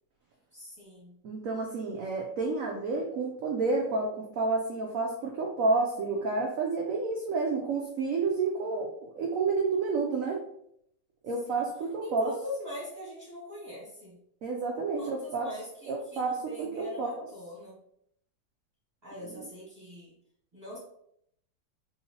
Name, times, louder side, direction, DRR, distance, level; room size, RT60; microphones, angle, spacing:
voice 1, 0.5-1.1 12.0-14.2 15.0-17.8 19.0-20.1 20.5-20.8, left 1 dB, 25° right, -7 dB, 1.3 m, -42 dB
voice 2, 1.2-10.4 11.2-12.3 14.4-15.5 15.9-17.1 19.2-19.5, right 3 dB, 80° right, 1 dB, 0.7 m, -30 dB
3.7 x 2.8 x 2.8 m, 0.71 s
omnidirectional pair, 2.0 m